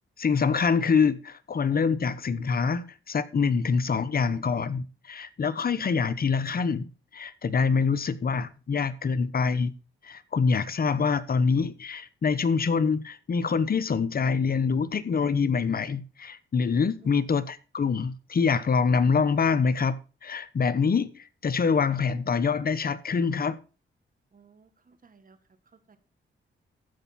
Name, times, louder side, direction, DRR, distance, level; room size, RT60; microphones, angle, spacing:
voice 1, 0.2-6.9 7.1-9.7 10.0-23.6, left 5 dB, 45° left, 1.0 m, -25 dB
voice 2, 24.3-25.4 25.9-26.0, right 5 dB, 40° right, 1.6 m, -57 dB
14.5 x 5.7 x 4.2 m
cardioid pair, 75°, 21 cm